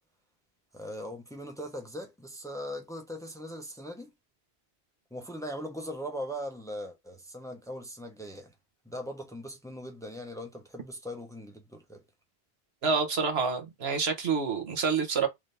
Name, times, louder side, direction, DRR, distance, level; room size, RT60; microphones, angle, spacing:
voice 1, 0.7-4.1 5.1-8.5 8.8-12.0, equal, 5° left, 0.5 m, -40 dB
voice 2, 12.8-15.3, right 5 dB, 70° right, 1.3 m, -27 dB
3.6 x 2.7 x 3.2 m
omnidirectional pair, 1.1 m